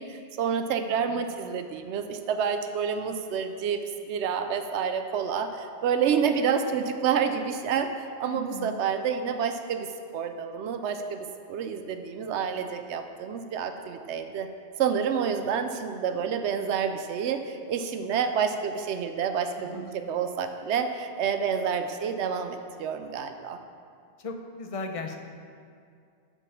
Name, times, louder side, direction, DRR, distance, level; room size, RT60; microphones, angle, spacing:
voice 1, 0.0-3.8 4.1-9.9 10.1-14.5 14.8-23.6, right 7 dB, 85° right, 8 dB, 0.9 m, -29 dB
voice 2, 0.8-1.3 8.2-8.8 19.6-20.1 24.2-25.2, left 2 dB, 35° left, 4 dB, 0.7 m, -37 dB
7.2 x 5.4 x 7.1 m, 2.3 s
omnidirectional pair, 1.1 m